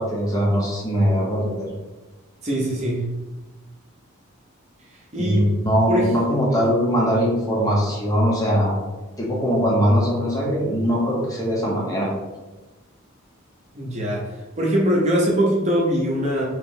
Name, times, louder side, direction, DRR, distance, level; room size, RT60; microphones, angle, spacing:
voice 1, 0.0-1.7 5.2-8.8 9.2-12.1, equal, 15° left, -4 dB, 0.8 m, -21 dB
voice 2, 2.4-3.1 5.1-5.5 5.9-6.1 13.7-14.3 14.6-16.5, equal, 30° right, -3 dB, 0.8 m, -22 dB
3.1 x 2.9 x 3.8 m, 1.1 s
head